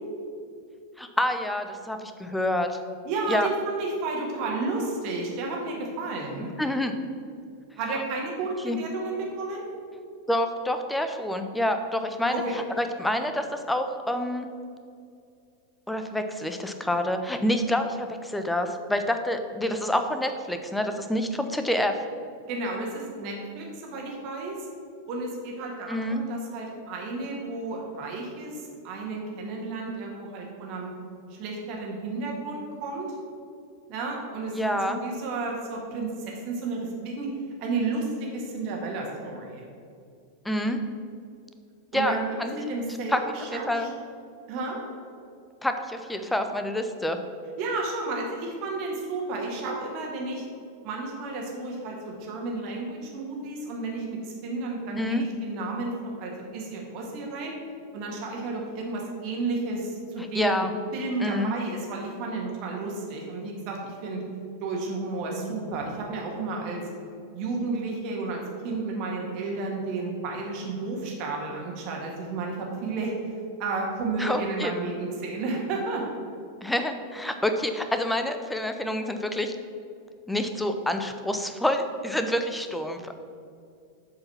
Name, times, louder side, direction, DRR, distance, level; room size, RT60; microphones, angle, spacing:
voice 1, 1.0-2.8 3.3-3.5 6.6-6.9 7.9-8.0 8.6-8.8 10.3-12.3 12.8-14.5 15.9-22.0 25.9-26.2 34.5-35.0 40.4-40.8 41.9-42.5 43.1-43.2 43.5-43.9 45.6-47.2 55.0-55.3 60.3-60.7 61.2-61.5 74.2-74.7 76.6-79.5 80.3-83.2, left 1 dB, 5° left, 7 dB, 0.6 m, -27 dB
voice 2, 3.0-6.5 7.8-9.6 12.3-12.6 22.5-24.7 25.1-30.9 31.3-33.2 33.9-37.3 37.6-39.6 41.9-42.2 42.5-43.9 44.5-44.8 47.6-50.4 50.8-57.5 57.9-64.2 64.6-66.8 67.3-73.1 73.6-76.0, right 3 dB, 40° right, -1 dB, 1.8 m, -32 dB
7.6 x 4.8 x 5.7 m, 2.4 s
figure-of-eight pair, 90°, 0 cm